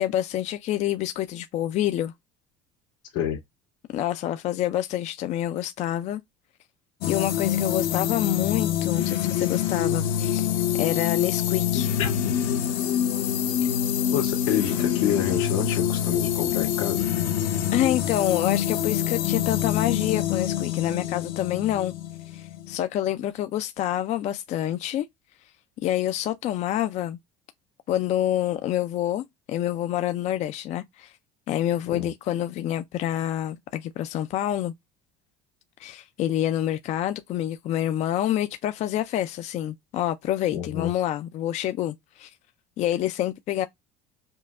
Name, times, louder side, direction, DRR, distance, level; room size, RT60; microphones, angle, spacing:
voice 1, 0.0-2.1 3.9-6.2 7.1-10.5 10.8-11.9 17.7-21.9 22.3-25.1 25.8-27.2 27.9-31.1 31.5-34.7 35.8-42.3 42.8-43.7, left 12 dB, 45° left, 0.4 m, -27 dB
sound 1, 7.0-22.8, left 10 dB, 65° left, 0.8 m, -26 dB
voice 2, 14.1-17.1 31.9-32.1 40.5-40.9, left 10 dB, 85° left, 1.8 m, -28 dB
5.4 x 2.2 x 2.4 m
supercardioid pair, 120°, 16 cm